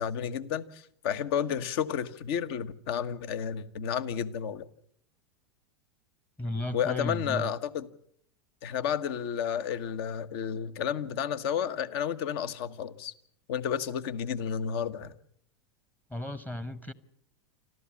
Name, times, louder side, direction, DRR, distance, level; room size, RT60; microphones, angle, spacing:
voice 1, 0.0-4.6 6.7-7.9 8.6-13.1 13.5-15.1, left 8 dB, 60° left, 1.3 m, -31 dB
voice 2, 6.4-7.5 16.1-16.9, left 1 dB, 10° left, 1.0 m, -34 dB
26.5 x 14.0 x 7.2 m
hypercardioid pair, 95°, 15 cm